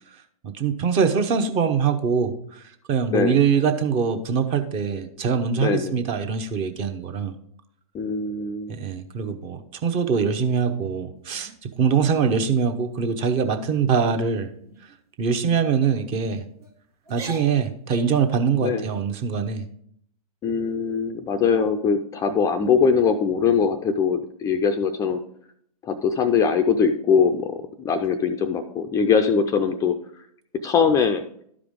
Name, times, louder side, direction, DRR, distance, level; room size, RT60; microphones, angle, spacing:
voice 1, 0.5-2.6 2.9-7.3 8.7-14.5 15.2-16.4 17.1-19.6, right 6 dB, 30° right, 7 dB, 0.8 m, -23 dB
voice 2, 3.1-3.4 5.6-6.0 7.9-8.7 18.6-18.9 20.4-25.2 25.8-30.0 30.6-31.2, left 6 dB, 15° left, 7 dB, 0.4 m, -22 dB
sound 1, 11.3-11.9 12.4-12.6 13.0-13.3 13.6-14.0 14.6-15.0 15.4-15.6 16.3-16.7 17.0-18.3, right 4 dB, 90° right, 1.7 m, -42 dB
12.0 x 4.9 x 3.6 m, 0.67 s
hypercardioid pair, 120°, 19 cm